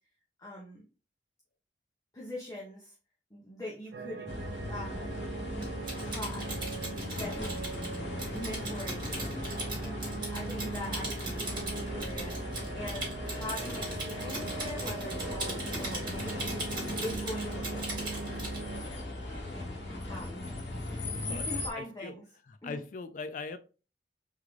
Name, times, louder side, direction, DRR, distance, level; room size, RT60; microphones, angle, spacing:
voice 1, 0.4-0.9 2.1-2.9 3.3-4.3 4.6-5.7 6.0-6.6 7.1-9.8 10.0-16.5 17.0-18.2 18.8-19.7 20.1-20.4 21.2-22.2 22.6-22.8, left 1 dB, 20° left, 0.9 m, -43 dB
sound 1, 3.9-18.8, right 5 dB, 65° right, 0.5 m, -42 dB
sound 2, 4.3-21.7, left 1 dB, 75° left, 1.2 m, -38 dB
Typing, 5.6-18.6, right 2 dB, 25° right, 2.4 m, -39 dB
voice 2, 20.7-22.2 22.5-23.6, left 4 dB, 45° left, 0.3 m, -41 dB
3.7 x 3.7 x 3.2 m
head